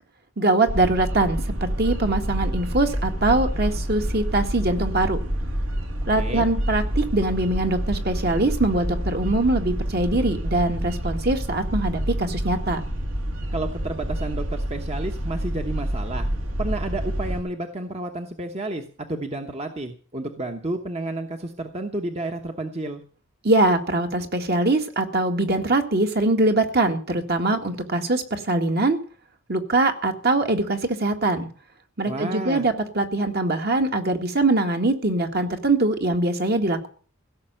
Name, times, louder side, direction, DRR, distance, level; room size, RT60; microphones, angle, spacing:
voice 1, 0.4-5.2 6.1-12.8 23.4-29.0 29.5-31.5 32.0-36.9, right 2 dB, 50° right, 5 dB, 1.9 m, -22 dB
sound 1, 0.7-17.4, equal, 70° right, 2.3 m, -28 dB
voice 2, 6.2-6.5 13.5-16.3 16.6-18.8 19.1-23.0 32.0-32.7, right 2 dB, 30° right, 5 dB, 1.1 m, -31 dB
16.5 x 6.7 x 8.9 m, 0.42 s
head